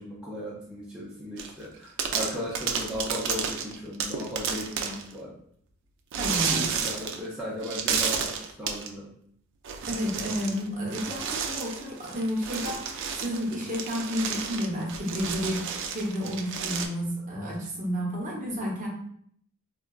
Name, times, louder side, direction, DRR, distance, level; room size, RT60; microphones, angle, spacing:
voice 1, 0.0-5.3 6.5-8.3 8.6-9.1, equal, 5° right, -8 dB, 0.5 m, -36 dB
sound 1, 1.4-1.6 2.0-5.1 6.1-7.3 7.6-8.9 9.6-10.6 10.9-16.9, right 6 dB, 60° right, 0.3 m, -31 dB
voice 2, 6.1-6.7 9.9-18.9, equal, 35° right, -3 dB, 0.8 m, -31 dB
3.6 x 2.2 x 2.3 m, 0.65 s
head